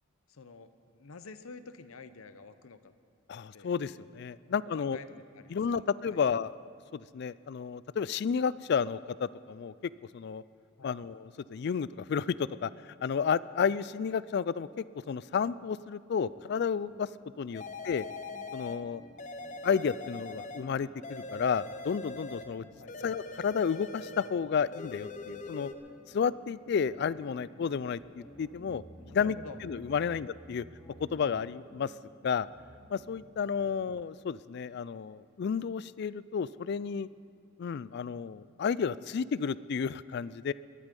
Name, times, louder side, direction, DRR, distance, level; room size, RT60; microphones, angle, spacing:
voice 1, 0.3-2.9 3.5-3.7 4.7-6.2 10.8-11.0 17.5-17.7 22.8-23.0 29.0-29.6 30.0-30.1 33.6-33.7, left 4 dB, 85° left, 12 dB, 0.7 m, -49 dB
voice 2, 3.3-5.0 5.5-6.5 6.9-10.4 10.8-12.7 13.0-17.1 17.4-18.0 18.5-19.0 19.6-22.7 23.0-25.7 26.1-28.8 29.1-30.6 31.0-31.9 32.2-32.5 32.9-37.1 37.6-40.5, left 6 dB, 50° left, 19 dB, 0.3 m, -32 dB
sound 1, 16.2-33.7, equal, 10° left, 3.3 m, -54 dB
sound 2, 17.5-18.8 19.2-20.7 21.0-22.5 22.9-24.4 24.7-25.7, left 3 dB, 35° left, 0.7 m, -42 dB
19.5 x 12.5 x 5.3 m, 2.3 s
head